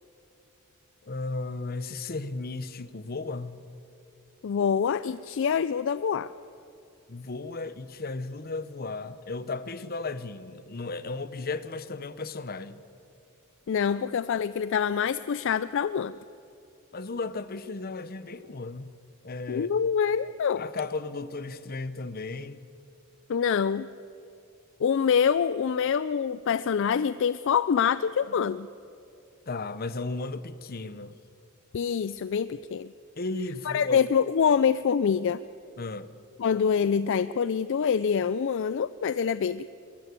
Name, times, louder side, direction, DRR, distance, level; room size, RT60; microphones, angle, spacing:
voice 1, 1.0-3.6 7.1-12.8 16.9-18.9 19.2-19.7 20.5-22.6 29.5-31.2 33.2-34.1 35.8-36.1, left 3 dB, 45° left, 0.8 m, -35 dB
voice 2, 4.4-6.3 13.7-16.2 19.5-20.6 23.3-23.9 24.8-28.7 31.7-32.9 33.7-35.4 36.4-39.7, left 7 dB, 60° left, 0.4 m, -25 dB
22.5 x 14.0 x 8.3 m
head